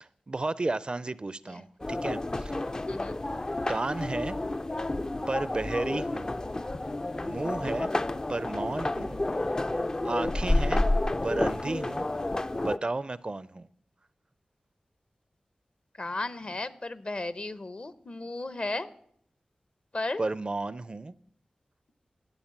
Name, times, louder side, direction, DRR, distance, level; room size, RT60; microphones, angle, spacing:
voice 1, 0.0-2.7 3.7-4.4 5.3-6.3 7.2-8.0 8.3-9.2 10.0-10.9 11.2-12.1 12.6-13.7 20.2-21.1, right 2 dB, 40° right, 0.4 m, -33 dB
sound 1, 1.8-12.8, left 2 dB, 30° left, 0.4 m, -30 dB
voice 2, 16.0-18.9 19.9-20.2, left 2 dB, 50° left, 0.8 m, -34 dB
13.0 x 8.7 x 7.2 m
wide cardioid pair, 55°, 2 cm